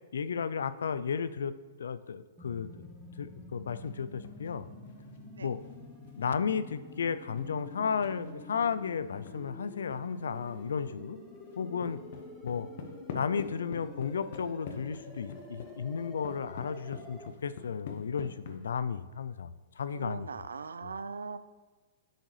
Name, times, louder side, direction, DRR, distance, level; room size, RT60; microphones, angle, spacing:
voice 1, 0.1-1.5 1.8-2.9 3.2-4.7 5.4-5.6 6.2-11.2 11.6-12.0 12.4-12.7 13.1-19.5 19.8-20.3 20.8-20.9, left 6 dB, 75° left, 13 dB, 0.3 m, -33 dB
sound 1, 2.4-17.3, left 1 dB, 5° left, 0.9 m, -49 dB
sound 2, 3.8-4.6 4.8-9.4 9.9-10.0 10.3-10.8 11.1-18.6, left 6 dB, 60° left, 0.9 m, -47 dB
voice 2, 19.9-21.4, right 4 dB, 85° right, 14 dB, 0.3 m, -40 dB
10.0 x 3.9 x 3.2 m, 1.4 s
hypercardioid pair, 125°, 0 cm